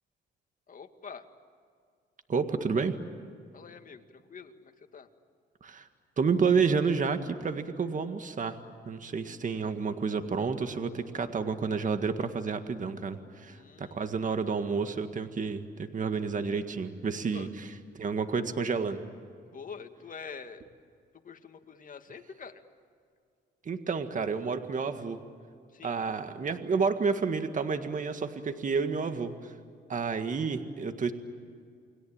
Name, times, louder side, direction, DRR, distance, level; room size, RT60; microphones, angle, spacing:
voice 1, 0.7-1.3 3.5-5.1 13.5-14.1 17.3-17.5 19.5-20.6 21.2-22.6 25.7-26.0, left 6 dB, 40° left, 6 dB, 2.2 m, -46 dB
voice 2, 2.3-3.0 5.6-5.9 6.2-8.6 8.9-17.5 17.9-19.0 23.7-25.2 25.8-29.5 29.9-31.1, right 5 dB, 40° right, 8 dB, 1.9 m, -30 dB
29.5 x 21.5 x 8.9 m, 2.2 s
cardioid pair, 90°, 20 cm